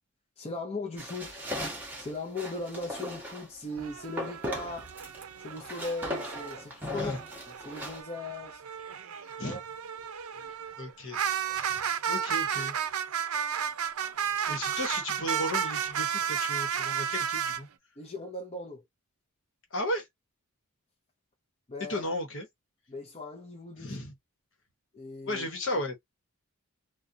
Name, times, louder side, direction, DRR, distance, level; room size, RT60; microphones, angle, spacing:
voice 1, 0.4-1.4 2.0-4.9 5.4-7.1 7.7-8.6 9.4-9.6 18.0-18.8 21.7-22.0 22.9-24.0 24.9-25.5, left 2 dB, 30° left, 0.6 m, -38 dB
sound 1, 1.0-3.5 4.2-5.2 5.5-8.0, left 1 dB, 10° right, 0.8 m, -38 dB
sound 2, 3.7-6.6 7.1-17.6, right 8 dB, 75° right, 0.5 m, -33 dB
voice 2, 6.9-7.2 9.4-9.6 10.8-11.2 11.5-12.7 14.5-17.7 19.7-20.1 21.9-22.5 23.8-24.1 25.2-26.0, left 1 dB, 60° left, 1.1 m, -35 dB
2.5 x 2.2 x 2.6 m
head